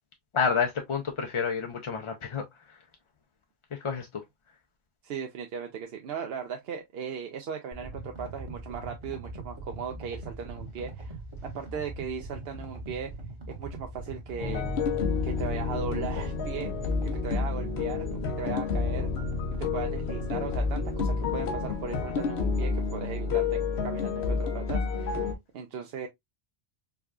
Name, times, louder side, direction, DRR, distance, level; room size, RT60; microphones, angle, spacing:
voice 1, 0.3-2.8 3.7-4.2, left 6 dB, 45° left, 0.4 m, -29 dB
voice 2, 5.0-11.2 11.4-13.2 13.5-14.7 15.2-19.1 19.6-23.6 23.8-26.1, right 7 dB, 70° right, 0.8 m, -38 dB
sound 1, 7.7-21.7, right 2 dB, 30° right, 1.1 m, -41 dB
sound 2, 14.4-25.3, left 5 dB, 80° left, 1.0 m, -29 dB
4.7 x 2.3 x 2.3 m
omnidirectional pair, 1.1 m